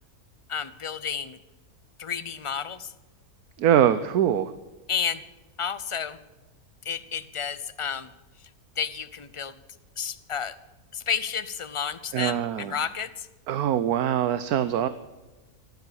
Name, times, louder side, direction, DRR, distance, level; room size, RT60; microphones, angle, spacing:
voice 1, 0.5-1.4 2.0-2.9 4.9-5.2 5.6-6.2 6.8-8.1 8.8-9.6 10.0-10.5 10.9-13.3, left 7 dB, 55° left, 13 dB, 0.3 m, -31 dB
voice 2, 3.6-4.5 12.1-12.7 13.5-14.9, right 10 dB, 80° right, 13 dB, 1.2 m, -23 dB
15.0 x 12.0 x 6.9 m, 1.1 s
omnidirectional pair, 1.6 m